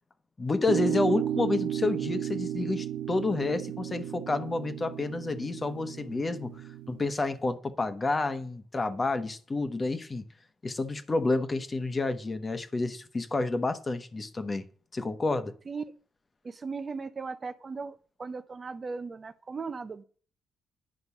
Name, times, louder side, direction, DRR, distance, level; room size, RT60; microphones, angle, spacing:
voice 1, 0.4-10.2 10.6-14.6 14.9-15.5, left 3 dB, 25° left, 1.1 m, -29 dB
sound 1, 0.7-7.1, right 11 dB, 80° right, 0.7 m, -33 dB
voice 2, 16.4-20.0, right 4 dB, 35° right, 0.7 m, -37 dB
10.0 x 5.3 x 7.1 m
cardioid pair, 90°, 0 cm